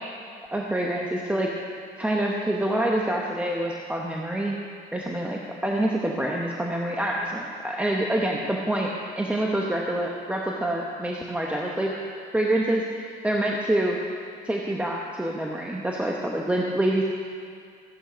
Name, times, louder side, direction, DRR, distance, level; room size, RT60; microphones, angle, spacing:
voice 1, 0.5-1.5 2.0-4.6 4.9-8.9 9.2-12.0 12.3-14.0 14.4-17.0, right 1 dB, 10° right, -1 dB, 1.0 m, -26 dB
14.5 x 9.9 x 5.1 m, 2.2 s
cardioid pair, 110°, 17 cm